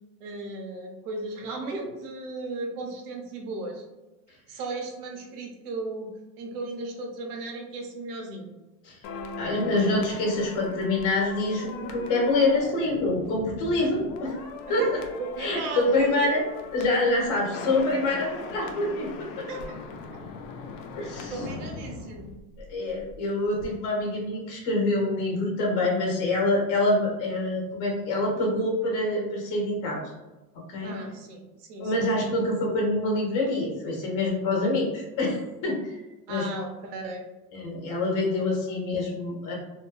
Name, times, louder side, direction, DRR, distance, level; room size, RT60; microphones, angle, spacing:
voice 1, 0.2-3.9 4.5-6.1 6.4-8.5 14.7-14.9 15.2-15.9 19.5-19.8 21.0-22.4 30.8-32.1 36.3-37.2 38.4-38.5, right 2 dB, 85° right, 2 dB, 0.8 m, -36 dB
sound 1, 9.0-23.2 23.4-23.7, left 4 dB, 85° left, 0.6 m, -40 dB
voice 2, 9.4-14.4 14.7-14.8 15.4-16.4 16.7-19.4 20.9-21.3 22.7-30.1 30.7-30.9 31.8-36.0 36.3-36.5 37.5-39.5, left 2 dB, 45° left, -2 dB, 1.0 m, -26 dB
2.7 x 2.2 x 2.2 m, 1.1 s
supercardioid pair, 115°, 45 cm